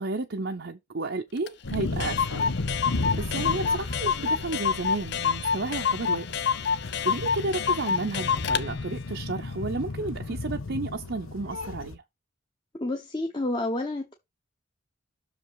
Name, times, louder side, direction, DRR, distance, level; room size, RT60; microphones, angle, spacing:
voice 1, 0.0-6.3 7.0-12.0, right 3 dB, 55° right, 0.7 m, -32 dB
Clock, 1.5-1.6 1.7-1.8 2.0-8.7, left 6 dB, 55° left, 0.6 m, -27 dB
sound 1, 1.6-11.9, left 3 dB, 85° left, 1.0 m, -34 dB
voice 2, 12.8-14.1, left 2 dB, 25° left, 1.1 m, -29 dB
6.6 x 5.2 x 4.9 m
head